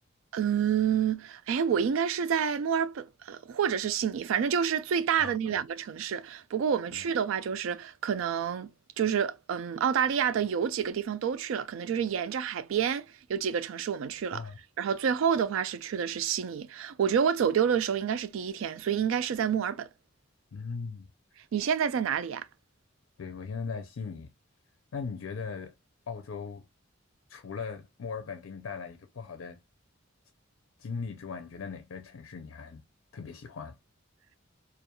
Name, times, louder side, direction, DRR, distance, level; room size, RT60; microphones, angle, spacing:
voice 1, 0.3-8.7 9.0-14.4 14.8-19.9 21.5-22.5, right 7 dB, 70° right, 0.3 m, -28 dB
voice 2, 5.2-5.6 6.9-7.0 14.3-14.6 20.5-21.1 23.2-24.3 24.9-25.7 26.1-26.7 27.3-29.6 30.8-32.8 33.1-33.8, left 5 dB, 75° left, 0.4 m, -39 dB
2.4 x 2.2 x 2.8 m
head